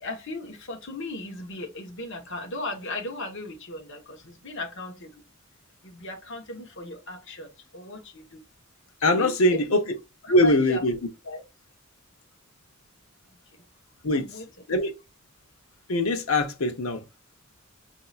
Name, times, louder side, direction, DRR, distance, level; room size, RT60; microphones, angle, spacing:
voice 1, 0.0-5.1 5.8-8.4 9.0-9.6 10.2-10.9 11.2-11.4 13.3-13.7 14.1-14.5, left 2 dB, 60° left, 1.1 m, -37 dB
voice 2, 9.0-9.8 10.3-11.0 14.0-14.3 14.7-14.9 15.9-17.0, left 1 dB, 90° left, 0.9 m, -22 dB
5.5 x 2.8 x 2.4 m
head